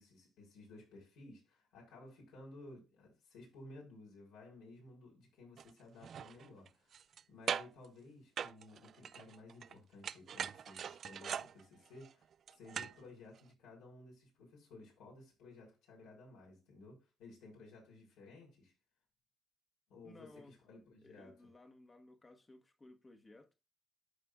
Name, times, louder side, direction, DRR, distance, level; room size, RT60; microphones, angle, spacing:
voice 1, 0.0-7.0 7.3-12.2 12.5-18.7 19.9-21.4, left 2 dB, 80° left, 4.4 m, -56 dB
sound 1, 5.6-5.7 6.0-7.2 7.5-7.9 8.4-9.7 10.0-13.0 13.4-13.5, right 8 dB, 55° right, 0.3 m, -41 dB
voice 2, 20.0-20.5 21.0-23.5, left 2 dB, 25° left, 1.5 m, -58 dB
13.0 x 5.0 x 2.5 m
supercardioid pair, 70°, 0 cm